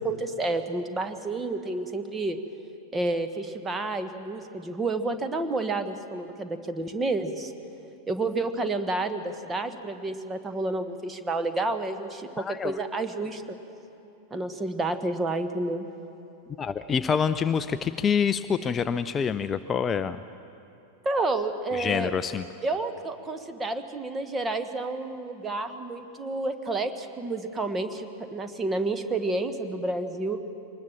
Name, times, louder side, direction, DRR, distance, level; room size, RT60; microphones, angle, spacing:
voice 1, 0.0-2.4 2.9-7.5 8.1-13.4 14.3-15.9 21.0-22.1 22.6-30.4, right 2 dB, 15° right, 8 dB, 1.3 m, -30 dB
voice 2, 12.4-12.8 16.6-20.2 21.7-22.4, left 6 dB, 20° left, 12 dB, 0.5 m, -26 dB
24.0 x 20.0 x 7.3 m, 3.0 s
figure-of-eight pair, 90°, 0 cm